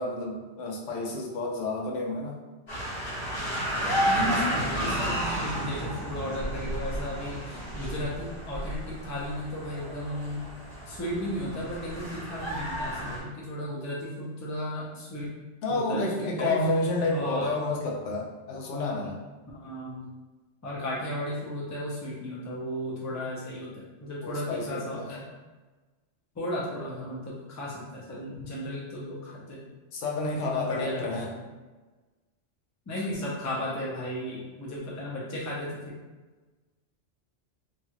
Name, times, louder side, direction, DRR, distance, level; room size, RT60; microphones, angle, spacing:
voice 1, 0.0-2.4 15.6-19.2 24.2-25.2 29.9-31.3 33.0-33.1, left 2 dB, 90° left, -1 dB, 0.9 m, -30 dB
sound 1, 2.7-13.2, right 1 dB, 60° left, 1.3 m, -32 dB
voice 2, 4.1-10.4 10.9-15.3 15.7-16.6 17.1-17.5 18.7-19.1 19.5-20.0 20.6-25.3 26.4-29.7 30.4-31.3 32.9-35.8, left 1 dB, 20° left, -5 dB, 0.5 m, -35 dB
2.9 x 2.4 x 2.8 m, 1.3 s
omnidirectional pair, 1.2 m